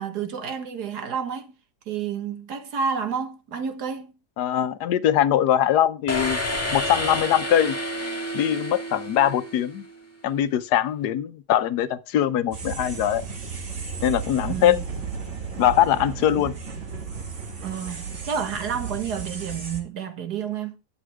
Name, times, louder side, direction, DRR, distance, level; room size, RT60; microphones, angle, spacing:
voice 1, 0.0-1.6 1.9-4.1 14.5-14.8 16.4-16.5 17.6-20.8, right 7 dB, 75° right, 1.9 m, -30 dB
voice 2, 4.4-6.4 6.7-7.8 8.3-9.8 10.2-13.2 14.0-14.8 15.6-16.5, left 11 dB, 80° left, 1.3 m, -22 dB
sound 1, 6.1-9.9, left 1 dB, 10° left, 2.0 m, -29 dB
sound 2, 12.5-19.8, right 5 dB, 45° right, 2.1 m, -34 dB
11.0 x 9.5 x 3.4 m
omnidirectional pair, 1.7 m